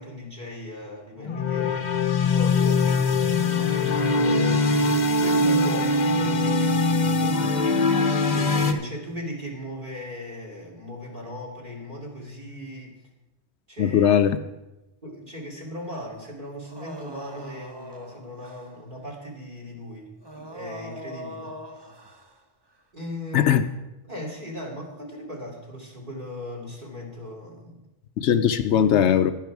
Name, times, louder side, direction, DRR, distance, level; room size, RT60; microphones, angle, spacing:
voice 1, 0.0-8.0 8.3-12.9 13.7-14.3 15.0-21.5 22.9-23.6 24.0-27.8, left 1 dB, 40° right, 1 dB, 2.8 m, -38 dB
sound 1, 1.2-8.7, left 3 dB, 40° left, 0.8 m, -22 dB
voice 2, 13.8-14.4 23.3-23.6 28.2-29.3, left 9 dB, 70° left, 10 dB, 0.8 m, -19 dB
sound 2, 16.7-18.7 20.2-22.4, equal, 25° right, 0.7 m, -41 dB
11.0 x 10.5 x 4.7 m, 0.98 s
omnidirectional pair, 1.3 m